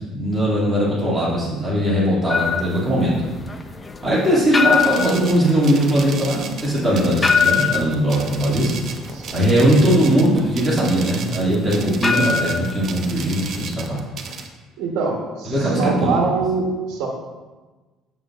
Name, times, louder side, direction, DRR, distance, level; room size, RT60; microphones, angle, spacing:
voice 1, 0.1-3.1 4.0-8.7 9.3-14.0 15.5-16.2, right 1 dB, 15° right, -7 dB, 2.3 m, -19 dB
sound 1, 2.3-13.6, left 6 dB, 20° left, 0.4 m, -24 dB
sound 2, 4.7-14.5, right 5 dB, 45° right, 0.7 m, -35 dB
voice 2, 9.1-10.0 14.8-17.1, right 4 dB, 80° right, 0 dB, 1.1 m, -24 dB
7.6 x 7.2 x 2.4 m, 1.2 s
cardioid pair, 130°, 0 cm